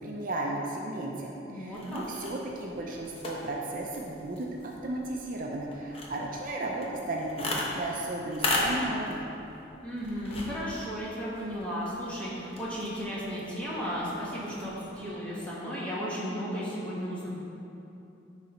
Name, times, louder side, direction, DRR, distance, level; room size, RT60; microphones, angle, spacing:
voice 1, 0.0-9.3, right 1 dB, 50° right, -1 dB, 0.6 m, -34 dB
voice 2, 1.5-2.0 9.8-17.3, equal, 5° left, -8 dB, 1.6 m, -34 dB
sound 1, 1.7-15.1, left 2 dB, 30° left, 1.0 m, -38 dB
10.5 x 4.1 x 4.4 m, 2.8 s
head